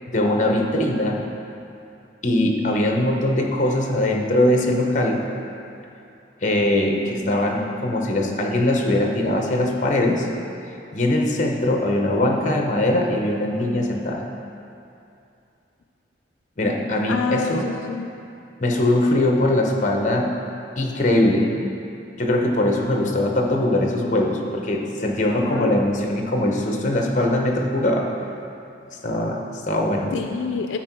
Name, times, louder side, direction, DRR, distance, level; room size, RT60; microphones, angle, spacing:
voice 1, 0.1-1.2 2.2-5.2 6.4-10.3 10.9-14.2 16.6-17.7 18.6-20.3 20.8-21.5 22.2-28.1 29.0-30.1, left 1 dB, 40° left, 1 dB, 0.8 m, -21 dB
voice 2, 17.1-18.1 25.0-25.1 25.4-25.7 30.1-30.8, left 5 dB, 80° left, 5 dB, 0.4 m, -27 dB
12.0 x 4.5 x 4.5 m, 2.7 s
head